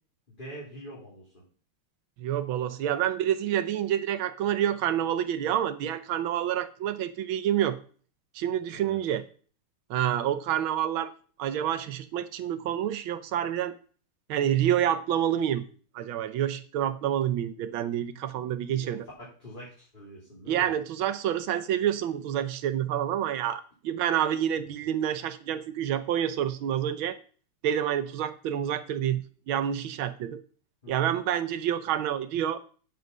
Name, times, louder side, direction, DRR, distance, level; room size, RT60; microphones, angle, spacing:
voice 1, 0.3-1.4 8.7-9.0 18.7-20.7 30.8-31.2, equal, 20° left, -7 dB, 3.5 m, -45 dB
voice 2, 2.2-7.8 8.3-9.2 9.9-11.1 11.4-13.7 14.3-15.6 15.9-19.1 20.5-27.2 27.6-30.4 30.9-32.6, right 10 dB, 70° right, 11 dB, 1.6 m, -28 dB
7.9 x 7.8 x 5.4 m, 0.42 s
omnidirectional pair, 2.4 m